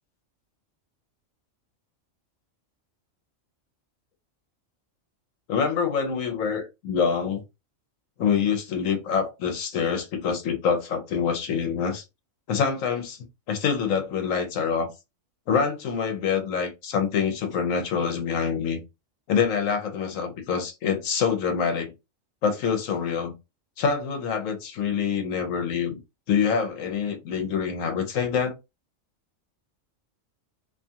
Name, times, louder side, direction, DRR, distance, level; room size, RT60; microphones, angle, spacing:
voice 1, 5.5-7.4 8.2-12.0 12.5-14.9 15.5-18.8 19.3-21.9 22.4-23.3 23.8-26.0 26.3-28.6, left 6 dB, 80° left, 1.2 m, -26 dB
2.7 x 2.4 x 2.7 m
omnidirectional pair, 1.4 m